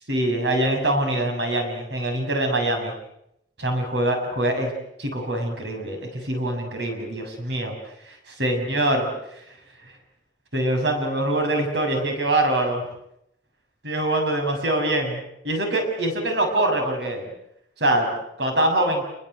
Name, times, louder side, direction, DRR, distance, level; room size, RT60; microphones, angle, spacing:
voice 1, 0.1-2.9 3.6-4.7 5.0-7.7 8.3-9.0 10.5-12.8 13.8-17.3 17.8-18.1 18.4-19.0, right 1 dB, 85° right, 4 dB, 7.3 m, -24 dB
29.0 x 21.5 x 8.2 m, 0.78 s
head